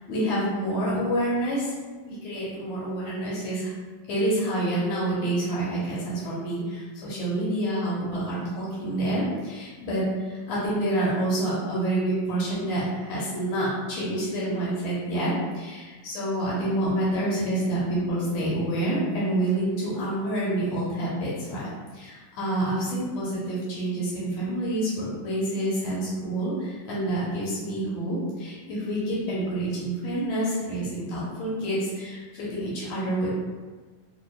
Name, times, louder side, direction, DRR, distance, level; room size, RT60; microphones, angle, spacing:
voice 1, 0.1-1.7 2.0-3.7 4.1-33.3, right 1 dB, 75° left, -7 dB, 1.5 m, -28 dB
6.1 x 2.3 x 2.3 m, 1.4 s
omnidirectional pair, 4.2 m